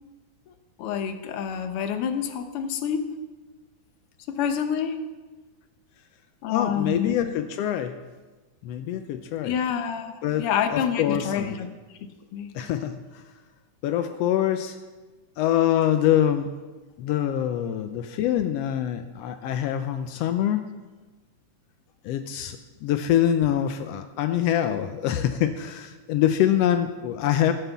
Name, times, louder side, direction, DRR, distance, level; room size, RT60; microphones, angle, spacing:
voice 1, 0.8-3.1 4.3-5.0 6.4-7.1 9.4-11.7 12.3-12.5, left 7 dB, 70° left, 8 dB, 1.4 m, -28 dB
voice 2, 6.5-8.0 8.6-9.5 10.2-11.6 12.5-13.2 13.8-14.8 15.4-16.5 17.0-20.6 22.0-27.5, left 11 dB, 85° left, 8 dB, 1.4 m, -25 dB
15.5 x 5.6 x 7.2 m, 1.2 s
omnidirectional pair, 3.4 m